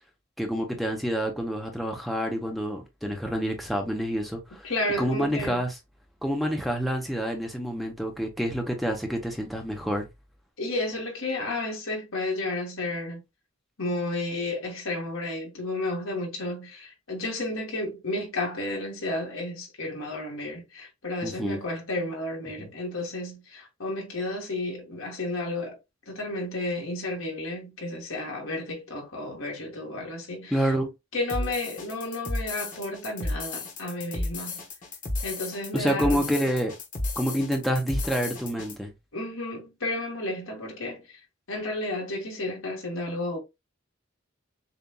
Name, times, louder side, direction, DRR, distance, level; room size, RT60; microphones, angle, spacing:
voice 1, 0.4-4.7 5.0-5.7 6.2-10.1 21.2-21.6 22.6-22.7 30.5-30.9 35.7-36.7 37.2-38.9, equal, ahead, 0.8 m, -28 dB
voice 2, 4.6-5.6 10.6-13.2 13.8-25.8 26.1-30.7 31.1-34.6 35.2-36.3 39.1-41.2 41.5-43.4, left 2 dB, 85° left, 2.0 m, -32 dB
sound 1, 31.3-38.8, left 2 dB, 40° left, 1.1 m, -33 dB
6.8 x 2.5 x 2.3 m
head